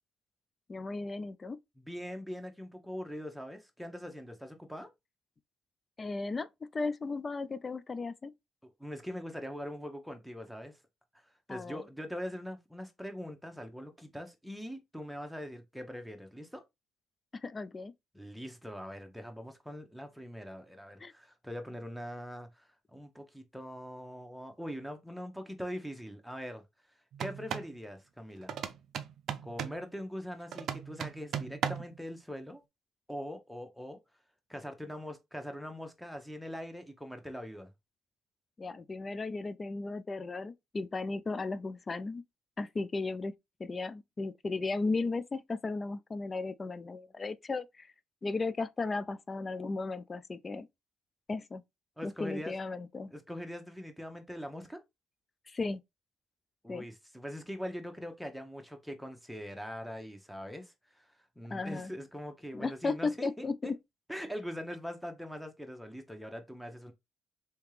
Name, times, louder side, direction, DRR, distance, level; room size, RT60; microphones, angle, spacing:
voice 1, 0.7-1.6 6.0-8.3 11.5-11.8 17.4-17.9 21.0-21.1 38.6-42.2 42.6-43.3 43.6-47.9 48.2-50.7 51.3-51.6 52.0-53.1 55.5-55.8 56.7-56.8 61.5-61.9 62.5-63.8, left 3 dB, 30° left, 0.3 m, -35 dB
voice 2, 1.8-4.9 8.6-10.8 11.5-16.6 18.1-26.6 27.2-28.6 29.4-32.6 33.1-34.0 34.5-37.7 52.0-52.5 53.1-54.8 56.6-61.1 61.4-63.7 64.1-66.9, equal, ahead, 0.9 m, -42 dB
sound 1, 27.1-27.7 28.5-29.8 30.5-32.0, right 8 dB, 65° right, 0.4 m, -37 dB
3.3 x 2.8 x 3.2 m
supercardioid pair, 70°, 0 cm